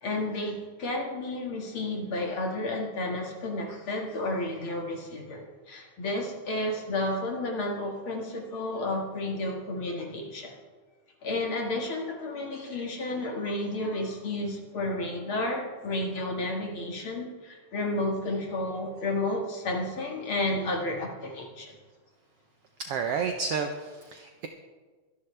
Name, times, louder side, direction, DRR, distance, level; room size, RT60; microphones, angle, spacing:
voice 1, 0.0-10.6 11.2-21.7, left 2 dB, 50° left, 1 dB, 2.4 m, -31 dB
voice 2, 22.8-24.5, right 5 dB, 70° right, 5 dB, 1.5 m, -31 dB
23.5 x 11.0 x 3.3 m, 1.4 s
omnidirectional pair, 3.4 m